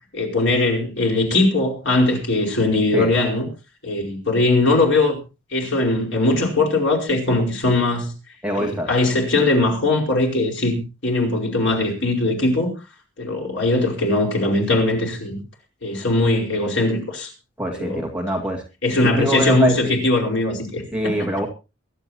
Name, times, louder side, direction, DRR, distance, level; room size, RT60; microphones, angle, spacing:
voice 1, 0.1-3.5 3.8-5.2 5.5-8.1 8.5-12.7 13.2-15.4 15.8-17.3 17.7-18.1 18.8-21.3, left 2 dB, 65° left, 5.0 m, -20 dB
voice 2, 8.4-8.9 17.6-18.6 19.1-20.0 20.9-21.5, equal, 5° right, 2.2 m, -23 dB
23.5 x 11.5 x 2.8 m
head